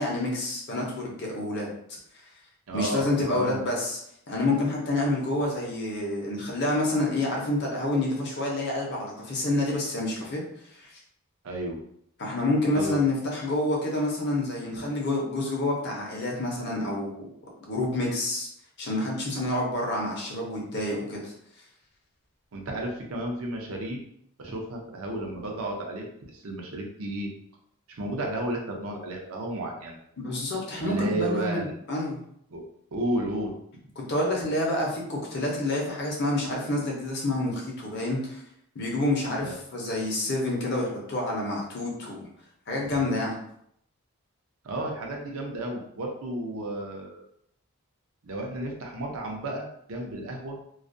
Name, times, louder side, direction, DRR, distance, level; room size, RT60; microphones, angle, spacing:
voice 1, 0.0-1.7 2.7-4.0 4.3-10.4 10.7-10.9 12.2-17.3 17.6-18.5 18.8-21.3 30.2-32.2 34.0-38.4 38.7-42.3 42.7-43.4, left 1 dB, 50° left, -2 dB, 0.6 m, -28 dB
voice 2, 2.7-3.0 3.3-3.6 11.4-11.8 12.7-13.0 14.7-14.8 22.5-24.0 24.4-27.3 27.9-30.0 30.8-31.7 32.5-32.6 32.9-33.5 39.4-39.5 44.6-47.2 48.2-50.6, right 1 dB, 70° right, 0 dB, 0.5 m, -32 dB
2.3 x 2.1 x 2.5 m, 0.71 s
head